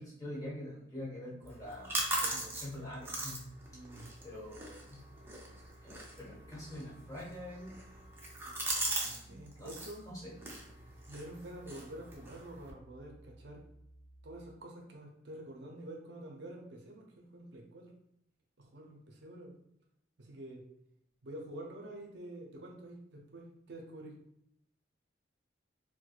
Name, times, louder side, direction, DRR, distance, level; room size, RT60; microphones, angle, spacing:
voice 1, 0.0-3.4 4.2-5.0 5.8-7.8 8.4-8.5 8.9-9.7 10.1-10.3, left 1 dB, 20° left, -6 dB, 1.2 m, -45 dB
sound 1, 1.4-14.5, right 1 dB, 50° left, 0.4 m, -58 dB
sound 2, 1.5-9.2 9.5-10.0 10.4-12.7, right 2 dB, 15° right, 0.6 m, -40 dB
voice 2, 3.7-4.1 9.0-10.1 10.8-13.6 14.2-17.9 18.6-19.6 20.2-20.6 21.2-24.2, right 1 dB, 65° right, 0 dB, 0.6 m, -48 dB
4.5 x 2.1 x 2.4 m, 0.77 s
head